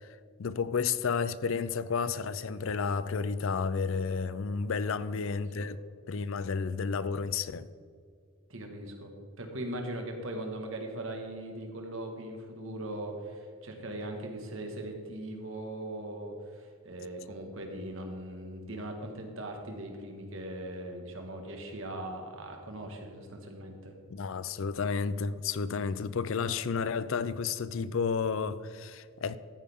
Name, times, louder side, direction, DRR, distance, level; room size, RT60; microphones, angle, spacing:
voice 1, 0.4-5.8 6.1-7.7 24.1-29.4, left 5 dB, 60° left, 0.4 m, -31 dB
voice 2, 8.5-23.9, right 1 dB, 60° right, 1.7 m, -40 dB
14.0 x 8.5 x 3.6 m
head